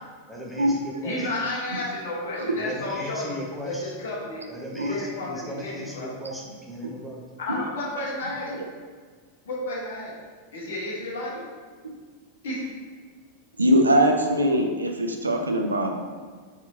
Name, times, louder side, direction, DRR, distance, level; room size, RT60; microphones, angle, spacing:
voice 1, 0.3-1.3 2.4-3.9 4.5-7.2, equal, ahead, -3 dB, 0.6 m, -37 dB
voice 2, 1.0-3.4 4.0-4.4 4.9-6.1 7.5-8.5 9.5-10.1 10.5-11.3 12.4-12.6, left 2 dB, 60° left, -4 dB, 0.9 m, -31 dB
voice 3, 13.6-15.9, equal, 80° right, 3 dB, 0.4 m, -21 dB
4.1 x 2.7 x 2.7 m, 1.5 s
figure-of-eight pair, 90°, 0 cm